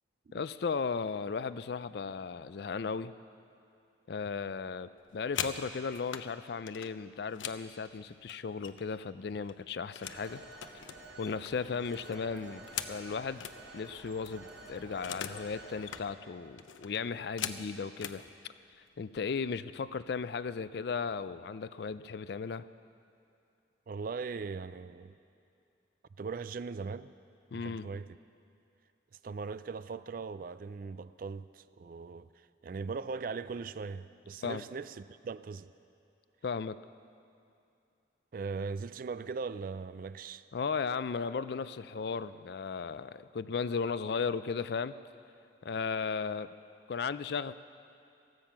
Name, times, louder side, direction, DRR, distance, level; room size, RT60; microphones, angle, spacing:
voice 1, 0.3-3.1 4.1-10.5 11.2-13.4 13.7-18.2 19.0-22.6 27.5-27.9 34.4-34.7 36.4-36.8 40.5-45.0 45.6-46.5 46.9-47.5, left 5 dB, 55° left, 0.4 m, -36 dB
sound 1, 5.0-6.3 6.7-9.0 9.3-10.2 10.6-13.6 14.0-14.1 14.3-15.5 15.7-16.1 16.6-18.2 19.0-19.2 19.6-19.9 20.2-20.7, left 8 dB, 85° left, 0.7 m, -42 dB
Telephone, 10.0-16.0, right 2 dB, 70° right, 2.2 m, -50 dB
voice 2, 23.9-25.1 26.2-27.1 27.5-28.1 29.2-35.7 38.3-40.5, right 4 dB, 45° right, 0.3 m, -39 dB
16.0 x 13.5 x 5.9 m
head